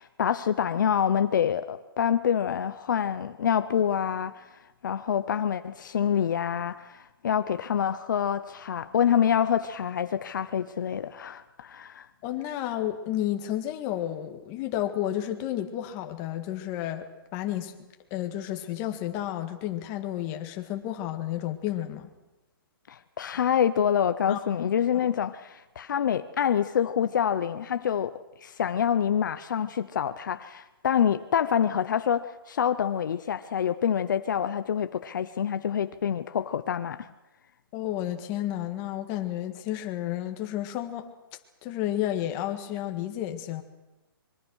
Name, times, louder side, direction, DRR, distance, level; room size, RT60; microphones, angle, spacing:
voice 1, 0.0-12.1 22.9-28.1 28.4-37.1, left 8 dB, 55° left, 0.9 m, -26 dB
voice 2, 12.2-17.7 18.1-22.1 24.3-24.4 24.9-25.1 37.7-41.1 41.6-43.6, left 12 dB, 20° left, 1.8 m, -31 dB
24.5 x 23.5 x 6.4 m
hypercardioid pair, 165°, 12 cm